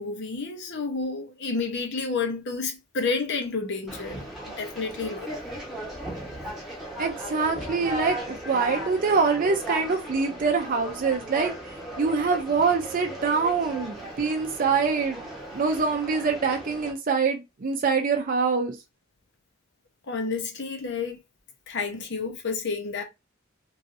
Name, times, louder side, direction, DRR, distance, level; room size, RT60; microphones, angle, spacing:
voice 1, 0.0-5.3 20.1-21.2 21.7-23.0, left 4 dB, 60° left, 0.8 m, -30 dB
Conversation, 3.9-16.9, right 1 dB, ahead, 1.1 m, -37 dB
voice 2, 7.0-11.5 12.0-15.2 15.5-18.8, right 5 dB, 45° right, 0.5 m, -25 dB
3.1 x 2.6 x 2.6 m
head